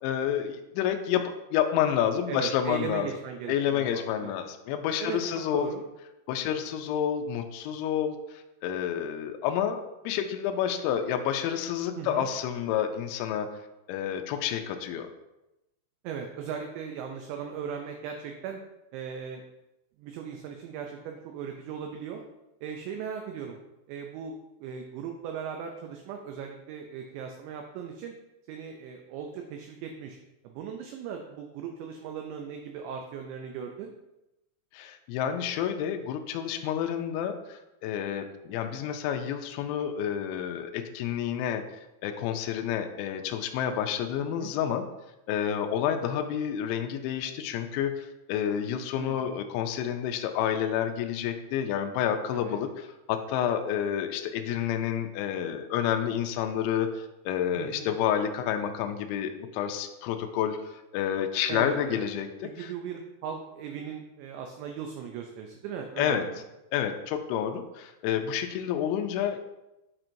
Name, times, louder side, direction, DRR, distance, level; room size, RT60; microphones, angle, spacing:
voice 1, 0.0-3.1 3.5-5.7 6.3-13.5 13.9-15.1 34.7-41.6 42.0-44.8 45.3-62.3 62.6-62.7 66.0-66.2 66.7-69.4, left 9 dB, 85° left, 6 dB, 2.7 m, -29 dB
voice 2, 2.3-4.3 5.0-5.8 12.0-12.3 16.0-18.6 18.9-19.4 20.0-22.2 22.6-23.6 23.9-24.3 24.6-28.1 28.5-30.2 30.4-33.9 44.2-44.5 49.0-49.2 52.3-52.6 57.6-57.9 61.5-62.1 62.4-66.4, right 7 dB, 90° right, 3 dB, 2.5 m, -38 dB
8.8 x 4.4 x 2.6 m, 0.94 s
omnidirectional pair, 5.7 m